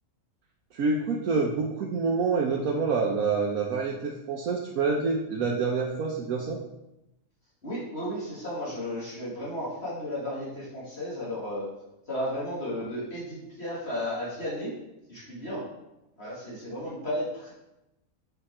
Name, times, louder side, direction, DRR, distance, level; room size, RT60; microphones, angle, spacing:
voice 1, 0.7-6.6, right 4 dB, 90° right, -1 dB, 1.2 m, -27 dB
voice 2, 7.6-11.7 12.1-14.7 15.1-15.6 16.2-17.5, left 1 dB, 50° left, -7 dB, 2.3 m, -34 dB
7.1 x 5.2 x 4.3 m, 0.90 s
omnidirectional pair, 1.4 m